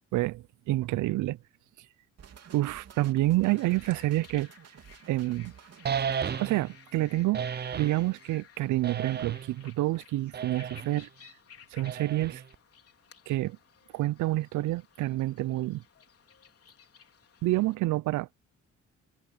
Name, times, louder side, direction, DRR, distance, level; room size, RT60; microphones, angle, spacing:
voice 1, 0.1-1.4 2.5-4.5 5.1-5.5 6.4-7.4 7.8-11.1 11.7-12.4 13.3-13.6 13.9-15.8 17.4-18.3, right 17 dB, 80° right, 0.5 m, -28 dB
sound 1, 2.2-6.5, right 8 dB, 55° right, 2.9 m, -52 dB
sound 2, 3.4-17.8, left 8 dB, 50° left, 4.1 m, -56 dB
sound 3, 5.8-6.8 7.3-8.0 8.8-9.6 10.3-10.9 11.8-12.5, right 7 dB, 35° right, 0.6 m, -33 dB
cardioid pair, 90°, 30 cm